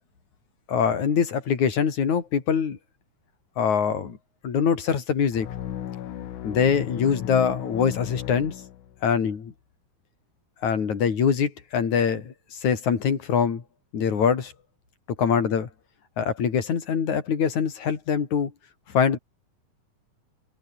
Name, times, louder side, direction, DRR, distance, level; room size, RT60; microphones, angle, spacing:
voice 1, 0.7-2.8 3.6-4.2 4.4-5.5 6.4-8.6 9.0-9.5 10.6-13.6 13.9-14.5 15.2-15.7 16.2-18.5 18.9-19.2, left 7 dB, 70° left, 4.4 m, -23 dB
sound 1, 5.3-9.2, left 11 dB, 90° left, 3.1 m, -35 dB
omnidirectional pair, 3.4 m